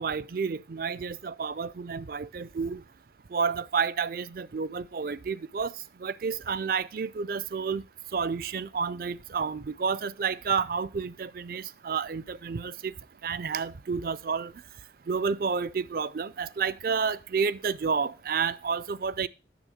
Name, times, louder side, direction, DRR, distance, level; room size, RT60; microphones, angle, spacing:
voice 1, 0.0-2.8 3.3-5.7 6.0-7.8 8.1-12.9 13.2-14.5 15.1-19.3, right 5 dB, 50° right, 0.4 m, -30 dB
9.2 x 7.0 x 4.9 m
head